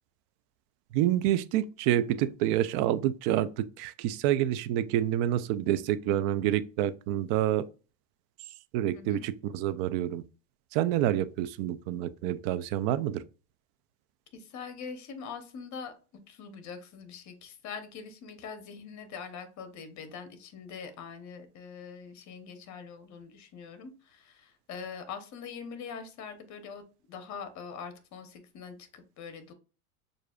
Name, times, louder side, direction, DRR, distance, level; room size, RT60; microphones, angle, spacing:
voice 1, 0.9-7.6 8.7-10.2 10.7-13.2, right 12 dB, 45° right, 0.5 m, -28 dB
voice 2, 14.3-15.9 16.3-26.8 27.1-29.5, left 6 dB, 40° left, 1.0 m, -43 dB
6.5 x 2.6 x 2.4 m
hypercardioid pair, 100°, 46 cm